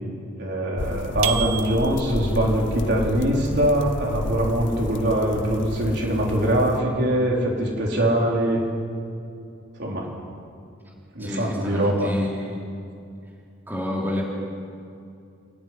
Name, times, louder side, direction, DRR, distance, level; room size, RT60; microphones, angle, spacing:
voice 1, 0.4-8.6 9.8-10.2 11.1-12.1, right 1 dB, 55° right, -2 dB, 4.5 m, -23 dB
sound 1, 0.8-6.8, left 3 dB, 60° left, 0.6 m, -32 dB
sound 2, 1.2-2.3, right 12 dB, 80° right, 0.9 m, -29 dB
voice 2, 11.2-12.7 13.7-14.2, left 1 dB, 10° right, -3 dB, 3.2 m, -29 dB
28.5 x 14.0 x 9.7 m, 2.5 s
head